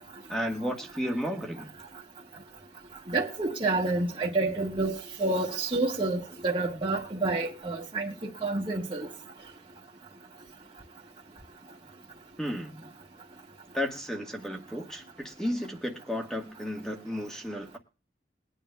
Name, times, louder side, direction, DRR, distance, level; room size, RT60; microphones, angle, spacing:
voice 1, 0.3-1.7 12.4-12.9 13.7-17.8, equal, 5° left, 1.4 m, -33 dB
voice 2, 3.1-9.1, right 2 dB, 30° right, 1.5 m, -29 dB
22.5 x 9.3 x 2.3 m
head